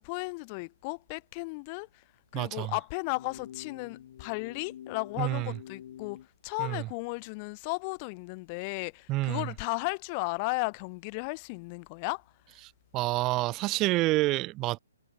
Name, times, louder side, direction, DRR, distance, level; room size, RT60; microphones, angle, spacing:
voice 1, 0.0-1.9 2.3-12.2, left 31 dB, 30° left, 3.9 m, -35 dB
voice 2, 2.3-2.7 5.2-5.6 6.6-6.9 9.1-9.5 12.9-14.8, right 19 dB, 25° right, 0.4 m, -28 dB
sound 1, 3.0-6.3, left 10 dB, 50° left, 2.9 m, -47 dB
figure-of-eight pair, 130°, 0 cm